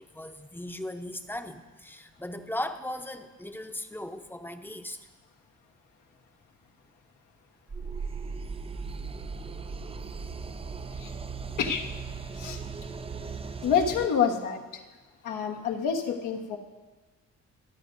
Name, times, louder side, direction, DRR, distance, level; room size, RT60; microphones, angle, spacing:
voice 1, 0.0-5.0, left 1 dB, 5° left, 7 dB, 0.8 m, -37 dB
sound 1, 7.7-14.1, right 5 dB, 20° right, 0.4 m, -37 dB
voice 2, 13.6-14.8 15.2-16.6, left 7 dB, 85° left, 1 dB, 1.4 m, -27 dB
27.0 x 9.3 x 2.7 m, 1.3 s
cardioid pair, 90°, 30 cm